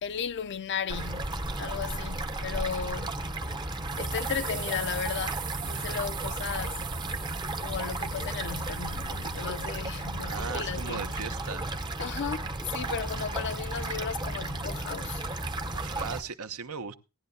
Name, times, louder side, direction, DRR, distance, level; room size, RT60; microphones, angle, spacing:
voice 1, 0.0-3.2 4.0-6.9 7.5-11.2 12.0-15.3, left 7 dB, 50° left, 0.5 m, -35 dB
sound 1, 0.9-16.2, right 2 dB, 20° right, 0.7 m, -34 dB
sound 2, 3.8-10.0, right 12 dB, 55° right, 1.4 m, -41 dB
voice 2, 10.2-11.7 15.7-16.9, right 5 dB, 70° right, 0.9 m, -38 dB
17.5 x 10.5 x 2.7 m
head